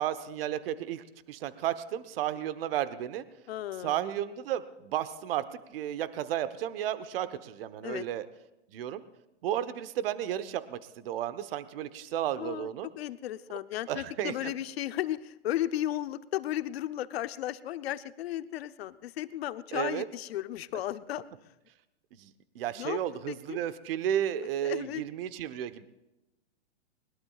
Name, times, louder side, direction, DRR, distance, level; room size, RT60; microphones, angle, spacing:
voice 1, 0.0-3.2 3.8-5.4 5.7-8.3 8.7-9.0 9.4-12.9 13.9-14.5 19.7-20.0 22.2-25.8, right 11 dB, 55° right, 13 dB, 1.1 m, -33 dB
voice 2, 3.5-4.0 7.8-8.1 12.4-12.7 13.0-21.5 22.8-23.0 23.3-23.6 24.6-25.0, left 13 dB, 60° left, 13 dB, 0.9 m, -35 dB
21.0 x 21.0 x 2.4 m, 0.98 s
hypercardioid pair, 125°, 35 cm